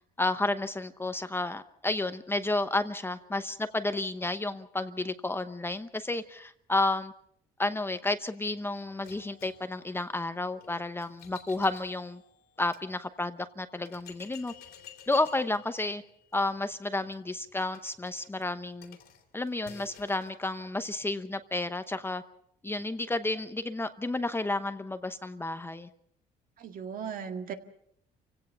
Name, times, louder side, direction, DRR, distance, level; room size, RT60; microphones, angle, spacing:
voice 1, 0.2-7.1 7.6-12.2 12.6-14.5 15.1-16.0 16.3-19.0 19.3-22.2 22.6-25.9, left 2 dB, 15° left, 10 dB, 0.9 m, -31 dB
sound 1, 9.0-12.8 13.4-13.5 13.9-20.4, left 9 dB, 70° left, 3.1 m, -53 dB
voice 2, 26.6-27.5, right 7 dB, 55° right, 6 dB, 2.0 m, -37 dB
28.5 x 17.0 x 5.7 m, 0.68 s
cardioid pair, 110°, 17 cm